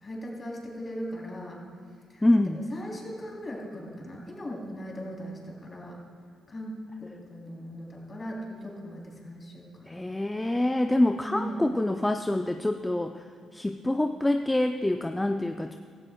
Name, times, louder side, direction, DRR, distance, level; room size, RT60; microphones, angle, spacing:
voice 1, 0.0-1.6 2.1-2.2 2.5-6.0 6.5-9.9 11.2-11.6, equal, 30° left, -2 dB, 3.1 m, -39 dB
voice 2, 2.2-2.6 9.9-13.1 13.5-15.8, left 1 dB, 10° left, 6 dB, 0.4 m, -26 dB
16.5 x 13.0 x 2.3 m, 2.2 s
cardioid pair, 90°, 0 cm